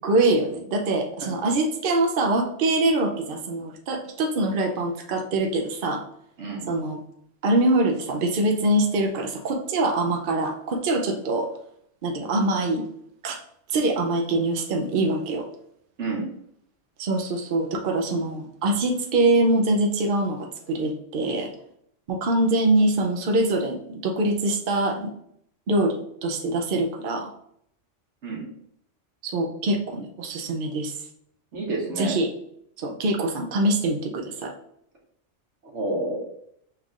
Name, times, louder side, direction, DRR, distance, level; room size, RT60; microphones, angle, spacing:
voice 1, 0.0-6.0 6.7-7.0 7.4-11.5 12.0-12.8 13.2-13.4 13.7-15.5 17.0-21.5 22.1-25.1 25.7-27.3 29.2-31.0 32.0-32.3 32.8-34.5, right 2 dB, 55° right, 2 dB, 0.7 m, -24 dB
voice 2, 31.5-32.2 35.7-36.2, right 2 dB, 70° right, -1 dB, 1.5 m, -29 dB
5.7 x 3.4 x 2.4 m, 0.70 s
omnidirectional pair, 1.2 m